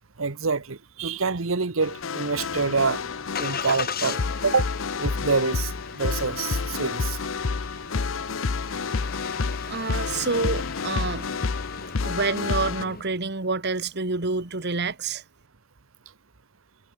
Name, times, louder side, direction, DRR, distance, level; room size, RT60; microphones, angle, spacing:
voice 1, 0.2-3.0 3.4-4.7 5.0-7.2, right 4 dB, 80° right, 1.1 m, -26 dB
sound 1, 1.8-12.8, left 4 dB, 70° left, 0.7 m, -29 dB
Engine starting, 2.3-13.0, left 6 dB, 50° left, 4.0 m, -39 dB
voice 2, 9.7-11.3 12.0-15.2, right 3 dB, 55° right, 2.1 m, -28 dB
head